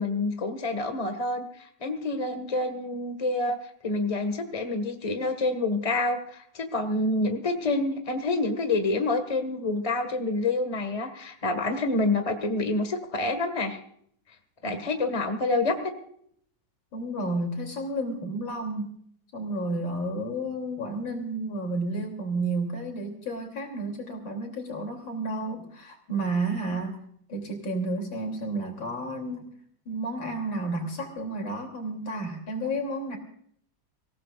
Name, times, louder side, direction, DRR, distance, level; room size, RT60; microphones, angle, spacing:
voice 1, 0.0-3.6 3.8-13.8 14.6-15.9, left 2 dB, 20° left, 7 dB, 1.6 m, -27 dB
voice 2, 16.9-18.9 19.3-27.0 27.3-29.5 29.9-33.2, right 2 dB, 85° left, 3 dB, 3.8 m, -31 dB
26.0 x 16.5 x 2.5 m, 0.64 s
omnidirectional pair, 2.1 m